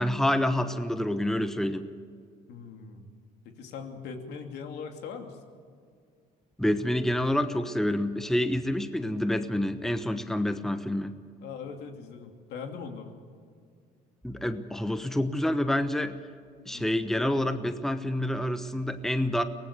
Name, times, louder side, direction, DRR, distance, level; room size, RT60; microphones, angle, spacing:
voice 1, 0.0-1.9 6.6-11.2 14.2-16.2 16.7-19.4, left 1 dB, ahead, 9 dB, 1.1 m, -28 dB
voice 2, 2.5-3.1 3.4-5.4 11.4-13.1 16.7-17.0, left 5 dB, 80° left, 4 dB, 2.8 m, -40 dB
24.0 x 19.0 x 6.8 m, 2.1 s
cardioid pair, 110°, 17 cm